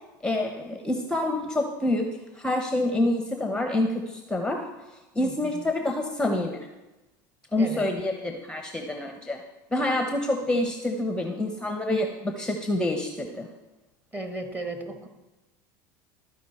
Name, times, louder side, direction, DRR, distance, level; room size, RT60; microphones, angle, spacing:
voice 1, 0.2-4.7 5.2-6.6 7.5-9.4 9.7-13.5, left 1 dB, 5° left, 4 dB, 0.8 m, -27 dB
voice 2, 5.2-5.6 7.6-7.9 14.1-15.1, right 2 dB, 15° right, 5 dB, 1.3 m, -35 dB
13.0 x 5.1 x 4.2 m, 1.1 s
supercardioid pair, 95°, 10 cm